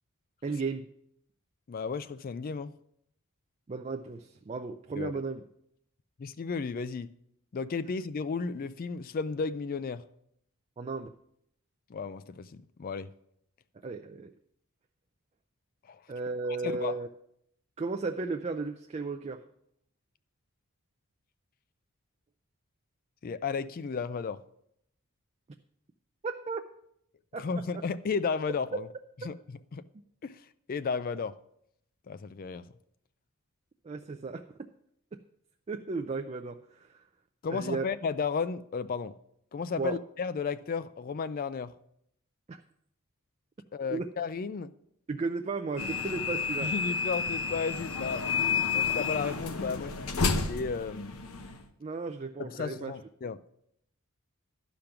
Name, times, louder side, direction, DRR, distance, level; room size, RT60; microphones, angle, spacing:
voice 1, 0.4-0.9 3.7-5.4 10.8-11.1 13.8-14.3 16.1-17.1 17.8-19.4 26.2-26.6 27.3-27.5 33.8-34.4 35.7-37.0 37.5-37.8 39.8-40.0 42.5-42.6 43.9-44.1 45.1-46.7 51.8-52.9, right 4 dB, 30° right, 0.4 m, -34 dB
voice 2, 1.7-2.7 5.0-5.1 6.2-7.1 7.5-10.0 11.9-13.1 15.9-16.0 16.5-17.0 23.2-24.4 27.4-28.9 29.2-29.8 30.2-30.4 30.7-31.3 32.1-32.6 37.4-39.1 39.5-41.7 43.7-44.7 46.6-48.3 48.7-51.2 52.4-53.4, left 5 dB, 40° left, 0.3 m, -34 dB
sound 1, 45.8-51.6, left 5 dB, 70° left, 0.9 m, -31 dB
12.0 x 5.1 x 5.8 m
head